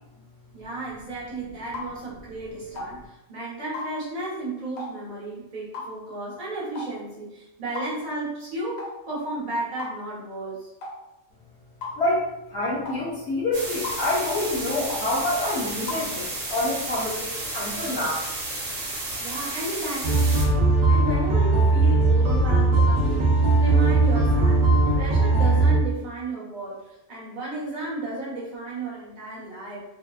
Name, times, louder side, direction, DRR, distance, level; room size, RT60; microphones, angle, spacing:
voice 1, 0.5-10.7 19.2-20.2 20.8-29.8, right 2 dB, 40° right, -7 dB, 1.0 m, -33 dB
sound 1, 1.7-1.9 2.8-2.9 3.7-3.9 4.8-5.0 5.7-5.9 6.8-6.9 7.8-7.9 8.8-9.0 9.8-10.0 10.8-11.0 11.8-12.0 12.9-13.0 13.8-14.0 14.9-15.1 15.9-16.1, left 3 dB, 85° left, 1.0 m, -34 dB
voice 2, 11.9-18.2, left 1 dB, 60° left, -7 dB, 1.0 m, -27 dB
sound 2, 13.5-20.5, right 2 dB, 85° right, 1.1 m, -32 dB
sound 3, 20.0-25.8, right 2 dB, 65° right, 0.8 m, -19 dB
2.7 x 2.1 x 2.3 m, 0.91 s
omnidirectional pair, 1.3 m